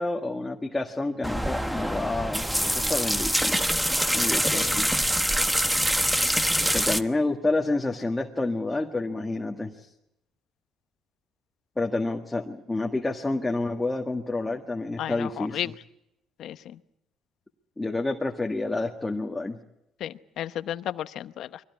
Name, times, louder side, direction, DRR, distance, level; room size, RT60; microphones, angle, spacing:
voice 1, 0.0-3.8 4.1-4.9 6.7-9.9 11.8-15.6 17.8-19.6, left 2 dB, 15° left, 1 dB, 1.8 m, -29 dB
sound 1, 1.2-7.0, equal, 5° right, 1.1 m, -25 dB
voice 2, 15.0-15.7 16.4-16.8 20.0-21.6, left 11 dB, 65° left, 12 dB, 0.9 m, -34 dB
23.5 x 17.5 x 9.6 m, 0.87 s
cardioid pair, 95°, 0 cm